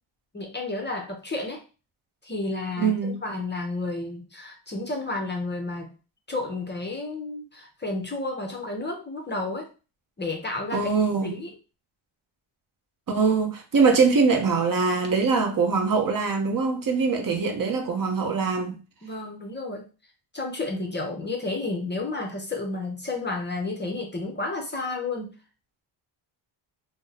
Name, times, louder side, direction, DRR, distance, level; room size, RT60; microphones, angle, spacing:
voice 1, 0.3-1.6 2.2-5.9 6.3-9.7 10.2-10.9 11.2-11.6 19.0-19.8 20.3-25.3, left 2 dB, 25° left, 0.5 m, -31 dB
voice 2, 2.8-3.2 10.7-11.3 13.1-18.8, right 5 dB, 45° right, 0.6 m, -23 dB
2.5 x 2.0 x 3.9 m
wide cardioid pair, 125°, 49 cm